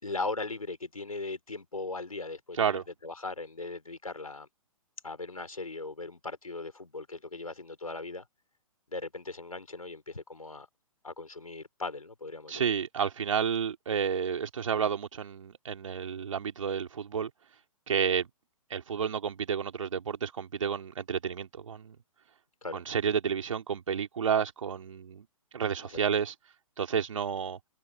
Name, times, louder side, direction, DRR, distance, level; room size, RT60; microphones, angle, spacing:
voice 1, 0.0-4.5 5.0-8.2 8.9-10.7 11.0-12.6 22.6-22.8, left 3 dB, 85° left, 5.6 m, -38 dB
voice 2, 12.5-17.3 17.9-18.3 18.7-22.0 22.7-25.2 25.5-26.3 26.8-27.6, right 7 dB, 65° right, 3.4 m, -30 dB
figure-of-eight pair, 120°, 18 cm